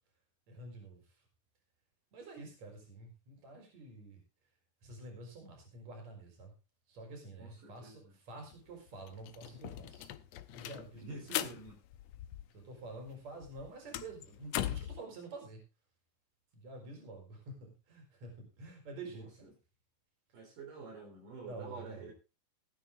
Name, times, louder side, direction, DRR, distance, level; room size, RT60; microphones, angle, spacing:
voice 1, 0.5-1.0 2.1-4.2 4.8-6.5 6.9-10.1 10.5-11.4 12.5-15.6 16.5-19.5 21.4-22.1, right 2 dB, 55° right, 3 dB, 5.6 m, -48 dB
voice 2, 7.4-8.1 11.0-11.8 19.1-19.5 20.3-22.1, right 3 dB, 75° right, -1 dB, 5.3 m, -48 dB
sound 1, 8.5-8.6 8.9-12.8 13.1-15.0, left 12 dB, 75° left, 1.6 m, -40 dB
16.0 x 9.9 x 3.6 m, 0.29 s
omnidirectional pair, 3.8 m